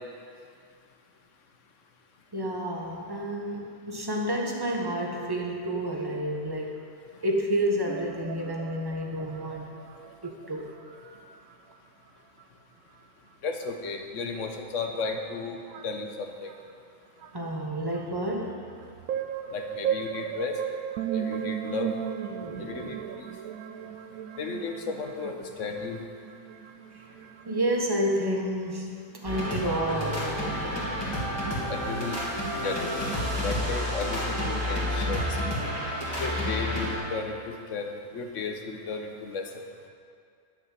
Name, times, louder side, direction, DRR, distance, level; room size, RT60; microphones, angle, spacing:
voice 1, 2.3-6.8 7.2-9.7 10.2-11.2 17.3-18.6 22.3-22.9 27.0-30.7 32.5-32.7, right 1 dB, 15° right, 0 dB, 1.2 m, -30 dB
sound 1, 7.9-10.5 10.7-11.2 11.5-11.7 12.4-12.5 13.6-13.7 14.5-14.6 14.8-16.0 16.5-16.7 17.2-17.3 17.9-27.6, right 9 dB, 75° right, 1.0 m, -36 dB
voice 2, 13.4-15.6 15.8-16.5 19.5-20.6 21.1-21.9 22.6-23.0 24.4-26.0 31.7-32.2 32.6-32.9 33.4-35.4 36.2-39.4, left 4 dB, 60° left, 4 dB, 1.3 m, -34 dB
sound 2, 29.2-37.0, equal, 15° left, 2.7 m, -30 dB
11.0 x 6.6 x 7.4 m, 2.3 s
omnidirectional pair, 1.5 m